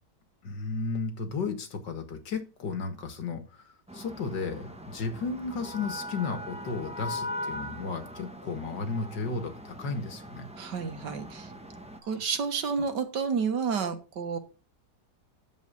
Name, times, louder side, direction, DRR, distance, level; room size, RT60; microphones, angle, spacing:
voice 1, 0.4-10.5 12.0-12.1, left 4 dB, 90° left, 8 dB, 2.3 m, -34 dB
sound 1, 3.9-12.0, equal, 5° right, 1.0 m, -40 dB
voice 2, 10.6-11.5 12.1-14.4, right 5 dB, 75° right, 7 dB, 2.0 m, -30 dB
9.6 x 7.2 x 5.4 m, 0.34 s
omnidirectional pair, 1.9 m